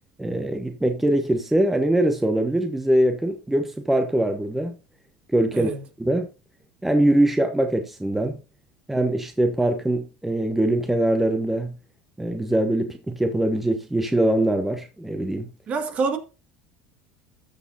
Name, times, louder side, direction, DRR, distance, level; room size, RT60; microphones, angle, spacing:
voice 1, 0.2-4.8 5.3-5.7 6.0-6.3 6.8-8.4 8.9-11.7 12.2-15.5, right 1 dB, 5° right, 1.1 m, -22 dB
voice 2, 15.7-16.2, right 4 dB, 40° right, 1.9 m, -25 dB
13.5 x 6.2 x 2.7 m
supercardioid pair, 115°, 3 cm